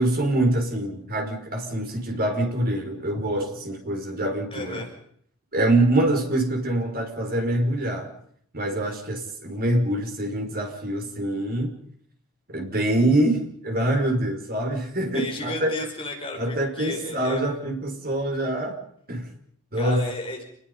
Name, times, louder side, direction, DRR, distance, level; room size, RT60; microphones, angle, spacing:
voice 1, 0.0-4.8 5.5-8.1 8.5-11.7 12.5-15.8 16.3-18.8 19.1-19.3 19.7-20.1, right 1 dB, 45° right, 3 dB, 5.7 m, -25 dB
voice 2, 4.5-4.9 15.1-17.4 19.7-20.4, left 2 dB, 25° left, 1 dB, 5.5 m, -33 dB
29.0 x 21.0 x 5.6 m, 0.66 s
head